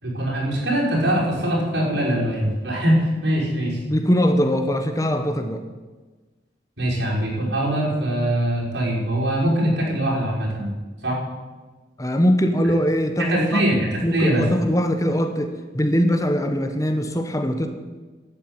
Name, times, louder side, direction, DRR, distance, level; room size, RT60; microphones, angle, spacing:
voice 1, 0.0-3.8 6.8-10.7 11.0-11.2 13.2-14.5, right 1 dB, 85° right, -4 dB, 6.0 m, -22 dB
voice 2, 3.8-5.6 12.0-13.7 14.0-17.7, equal, 20° left, 6 dB, 1.2 m, -21 dB
12.0 x 9.3 x 8.9 m, 1.3 s
head